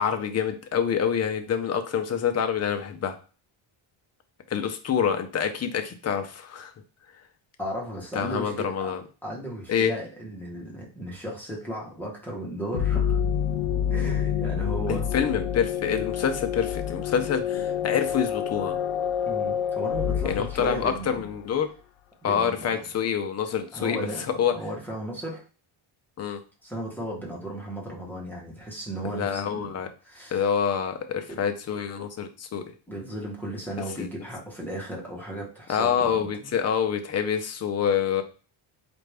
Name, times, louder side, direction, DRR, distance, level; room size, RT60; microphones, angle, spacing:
voice 1, 0.0-3.2 4.5-6.7 8.1-9.0 9.7-9.9 14.9-18.8 20.2-21.7 22.2-24.1 24.4-24.6 26.2-26.4 29.0-29.9 30.3-32.6 34.0-34.1 35.7-38.2, left 7 dB, 35° left, 6 dB, 0.5 m, -26 dB
voice 2, 7.6-8.9 9.2-13.2 13.9-15.1 19.3-21.2 22.2-22.8 23.7-25.4 26.6-29.7 30.0-30.4 31.3-31.4 32.9-36.5, right 1 dB, 5° left, -3 dB, 1.1 m, -35 dB
sound 1, 12.7-21.4, left 8 dB, 90° left, 0.6 m, -28 dB
4.2 x 2.6 x 3.3 m, 0.36 s
cardioid pair, 150°, 49 cm